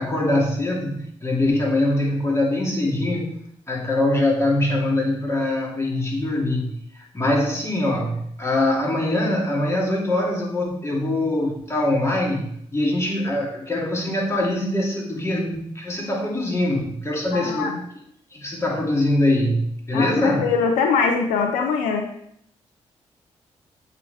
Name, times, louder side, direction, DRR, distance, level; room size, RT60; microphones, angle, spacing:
voice 1, 0.0-17.7 18.3-20.5, left 1 dB, 20° left, -3 dB, 2.6 m, -23 dB
voice 2, 17.3-17.8 19.9-22.1, left 5 dB, 90° left, 4 dB, 0.6 m, -22 dB
7.9 x 3.8 x 3.4 m, 0.69 s
supercardioid pair, 50°, 13 cm